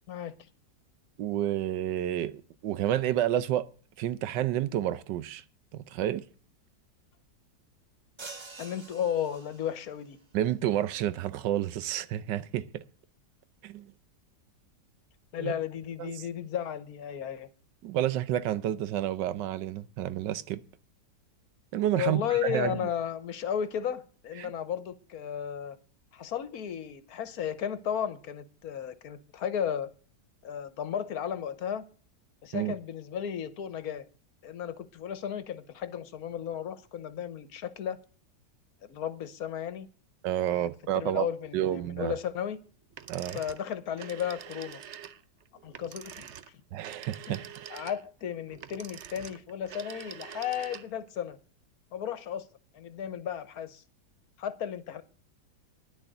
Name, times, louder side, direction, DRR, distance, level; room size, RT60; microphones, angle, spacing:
voice 1, 1.2-3.6 4.0-5.4 5.7-6.2 10.3-12.8 13.6-13.9 15.4-15.5 16.0-16.1 17.8-20.6 21.7-22.8 24.4-24.5 32.5-32.7 40.2-41.3 41.5-42.1 43.1-43.4 46.7-47.4, right 12 dB, 85° right, 1.4 m, -30 dB
sound 1, 8.2-10.0, right 3 dB, 40° right, 0.4 m, -46 dB
voice 2, 8.6-10.2 15.3-17.5 21.9-25.8 26.1-29.9 30.4-31.8 32.4-34.1 34.4-38.0 38.8-39.9 40.5-42.6 43.3-44.8 45.6-46.6 47.3-47.4 47.7-51.4 51.9-52.5 52.7-53.8 54.4-55.0, left 9 dB, 60° left, 1.3 m, -34 dB
sound 2, 42.9-51.1, right 9 dB, 60° right, 0.8 m, -45 dB
10.5 x 6.4 x 9.0 m
omnidirectional pair, 1.9 m